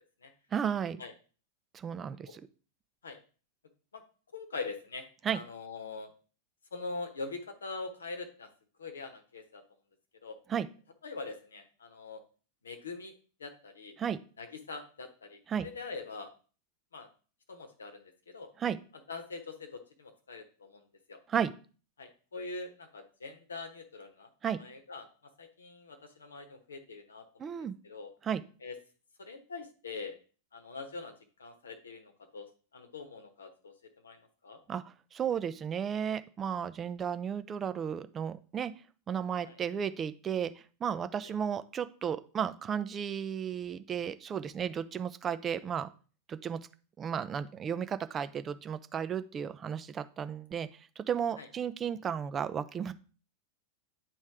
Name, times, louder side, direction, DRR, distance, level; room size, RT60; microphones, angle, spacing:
voice 1, 0.5-1.0 1.7-2.4 5.2-5.4 10.5-10.7 14.0-14.2 15.5-15.7 18.6-18.8 21.3-21.5 24.4-24.6 27.4-27.8 28.2-28.4 34.7-38.7 39.1-40.5 40.8-45.9 46.3-46.6 47.0-52.9, right 8 dB, 25° right, 12 dB, 0.5 m, -34 dB
voice 2, 4.3-5.1 5.3-6.1 6.7-8.5 8.8-9.6 10.2-10.4 11.0-12.2 12.6-13.1 13.4-14.0 14.4-16.3 16.9-17.1 17.5-18.5 19.1-20.8 21.1-21.2 22.0-24.3 24.6-27.5 27.8-28.1 28.6-28.8 29.2-30.2 30.5-31.1 31.4-34.6 39.4-39.6 41.2-41.3 51.4-51.5, left 3 dB, 70° left, 8 dB, 1.0 m, -43 dB
9.3 x 3.2 x 4.8 m, 0.39 s
figure-of-eight pair, 90°, 0 cm